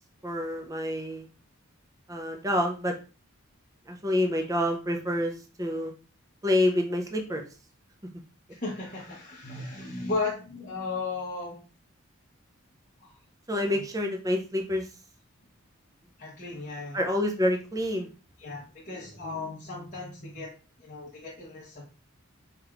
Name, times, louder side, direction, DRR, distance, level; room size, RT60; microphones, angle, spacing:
voice 1, 0.2-1.3 2.1-2.9 3.9-5.3 5.6-5.9 6.4-7.4 13.5-14.9 16.9-18.1, left 1 dB, 15° right, 3 dB, 0.5 m, -27 dB
voice 2, 8.5-11.5 13.0-13.1 13.6-13.7 16.2-17.0 18.4-20.5 20.8-21.8, left 3 dB, 40° left, -5 dB, 1.0 m, -35 dB
4.9 x 2.9 x 2.5 m, 0.35 s
head